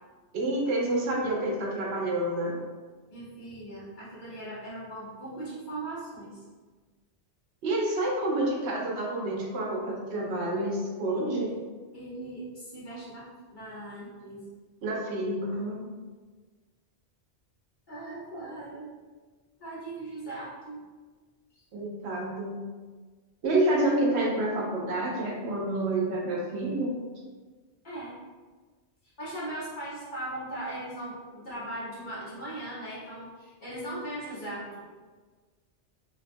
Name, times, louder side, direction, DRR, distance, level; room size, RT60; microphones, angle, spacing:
voice 1, 0.3-2.6 7.6-11.5 14.8-16.0 21.7-22.6 23.4-26.9, right 1 dB, 75° right, -2 dB, 0.8 m, -28 dB
voice 2, 3.1-6.4 11.9-14.4 17.9-18.9 19.6-20.9 21.5-21.6 27.8-28.1 29.2-34.8, right 1 dB, 45° left, -9 dB, 0.9 m, -39 dB
2.6 x 2.3 x 2.5 m, 1.4 s
omnidirectional pair, 1.2 m